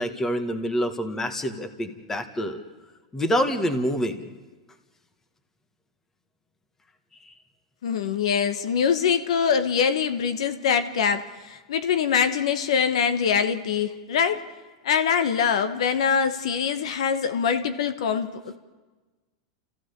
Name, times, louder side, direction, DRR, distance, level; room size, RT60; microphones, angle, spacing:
voice 1, 0.0-2.6 3.1-4.2 7.2-7.3, equal, 15° left, 8 dB, 1.7 m, -26 dB
voice 2, 7.8-14.4 14.8-18.6, left 7 dB, 80° left, 10 dB, 1.2 m, -24 dB
28.0 x 15.5 x 6.8 m, 1.3 s
supercardioid pair, 125°, 3 cm